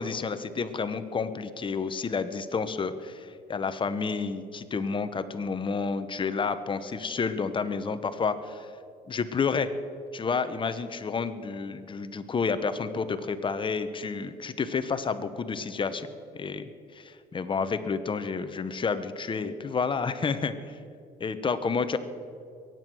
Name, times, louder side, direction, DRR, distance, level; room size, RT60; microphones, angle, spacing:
voice 1, 0.0-8.7 9.1-9.7 10.1-16.1 16.3-20.8 21.2-22.0, left 5 dB, 30° left, 11 dB, 0.9 m, -30 dB
22.0 x 9.3 x 6.2 m, 2.4 s
cardioid pair, 110°, 17 cm